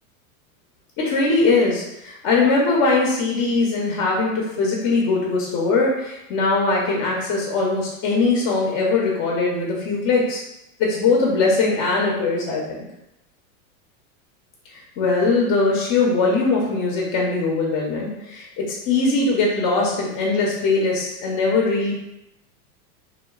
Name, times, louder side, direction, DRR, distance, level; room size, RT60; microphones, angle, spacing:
voice 1, 1.0-10.4 10.8-12.9 15.0-21.9, left 3 dB, 40° left, -2 dB, 0.7 m, -21 dB
2.9 x 2.2 x 2.3 m, 0.86 s
hypercardioid pair, 115°, 42 cm